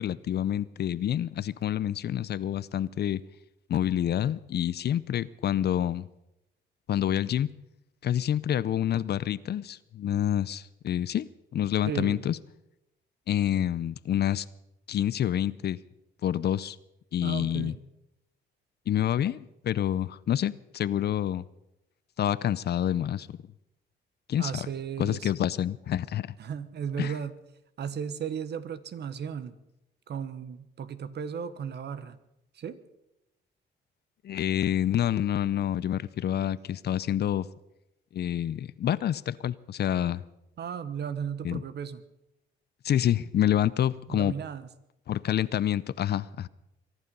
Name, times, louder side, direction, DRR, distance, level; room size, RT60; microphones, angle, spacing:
voice 1, 0.0-3.2 3.7-6.1 6.9-7.5 8.0-12.4 13.3-14.5 14.9-15.8 16.2-16.8 17.1-17.7 18.9-21.4 22.2-23.4 24.3-24.7 25.0-26.3 27.0-27.1 34.2-37.5 38.1-40.2 41.4-41.6 42.8-44.3 45.1-46.5, left 11 dB, 55° left, 19 dB, 0.6 m, -27 dB
voice 2, 11.9-12.3 17.2-17.8 24.4-25.3 26.4-27.4 27.8-29.5 30.1-32.2 32.5-32.8 40.6-42.0 44.1-44.7, right 7 dB, 60° right, 13 dB, 1.2 m, -35 dB
23.0 x 11.5 x 5.4 m, 0.87 s
cardioid pair, 90°, 20 cm